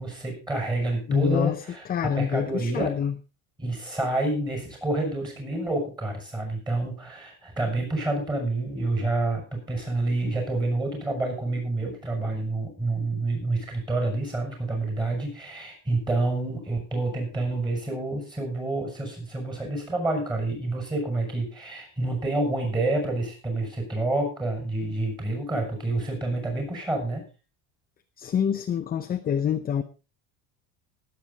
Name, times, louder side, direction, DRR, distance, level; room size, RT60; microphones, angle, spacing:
voice 1, 0.0-3.0 3.6-27.3, right 2 dB, 10° right, 3 dB, 6.5 m, -28 dB
voice 2, 1.1-3.2 28.2-29.8, left 8 dB, 20° left, 8 dB, 0.6 m, -26 dB
19.5 x 8.6 x 4.1 m, 0.33 s
cardioid pair, 150°, 41 cm